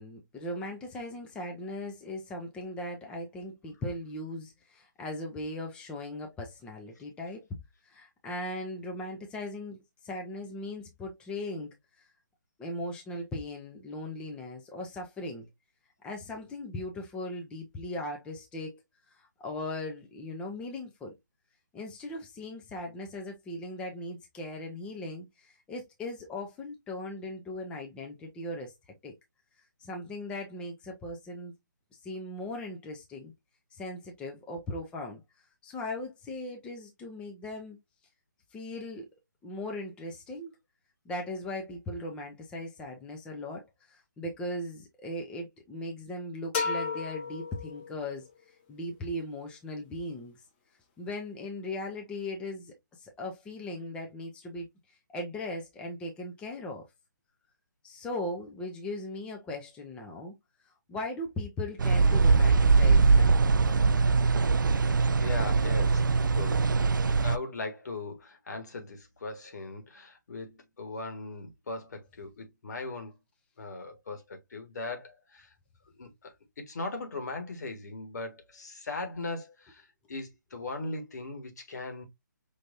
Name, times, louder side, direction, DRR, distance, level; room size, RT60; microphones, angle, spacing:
voice 1, 0.0-7.4 7.8-12.0 12.6-15.5 16.0-18.8 19.1-21.1 21.7-28.7 29.0-29.1 29.8-31.5 32.0-33.3 33.7-35.2 35.6-37.8 38.5-39.1 39.4-40.5 41.0-48.3 48.7-50.4 51.0-56.9 57.8-60.3 60.9-63.5, left 1 dB, 10° left, 0.7 m, -38 dB
sound 1, 46.5-48.3, left 5 dB, 30° left, 1.1 m, -33 dB
sound 2, 61.8-67.4, right 4 dB, 80° right, 0.4 m, -22 dB
voice 2, 65.2-66.7 67.2-73.1 73.6-75.5 76.0-82.0, left 3 dB, 60° left, 1.8 m, -39 dB
5.5 x 3.1 x 2.6 m
figure-of-eight pair, 145°, 10 cm